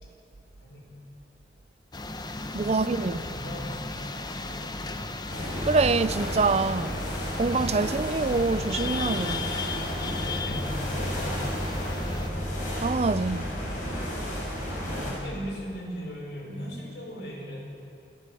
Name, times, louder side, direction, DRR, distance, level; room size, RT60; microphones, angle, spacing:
voice 1, 0.6-1.0 2.7-5.2 10.2-12.3 14.7-17.6, equal, 70° left, 5.6 m, -39 dB
sound 1, 1.9-12.3, left 3 dB, 25° left, 1.0 m, -36 dB
voice 2, 2.5-3.2 5.7-7.0 7.4-9.5 12.8-13.5, right 4 dB, 35° right, 0.5 m, -25 dB
sound 2, 5.3-15.1, equal, 45° left, 7.1 m, -32 dB
27.0 x 13.5 x 8.4 m
head